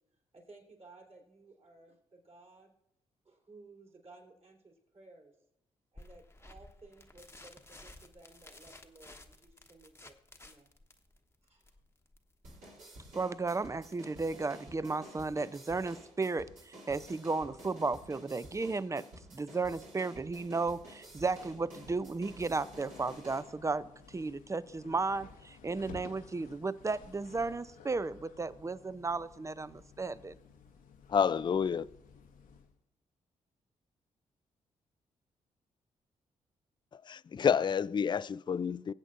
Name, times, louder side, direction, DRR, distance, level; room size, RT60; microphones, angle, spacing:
voice 1, 0.3-2.7 3.2-5.3 5.9-10.7 11.4-11.8, right 3 dB, 45° right, 3.6 m, -57 dB
sound 1, 6.0-15.1, left 2 dB, 15° left, 1.0 m, -56 dB
sound 2, 12.4-23.4, right 1 dB, 70° right, 3.1 m, -52 dB
voice 2, 13.2-30.4, right 3 dB, 20° right, 0.5 m, -34 dB
sound 3, 21.0-32.7, left 5 dB, 75° left, 0.9 m, -55 dB
voice 3, 31.1-31.9 37.1-38.9, left 7 dB, 30° left, 0.3 m, -29 dB
23.0 x 8.0 x 2.5 m
supercardioid pair, 50°, 14 cm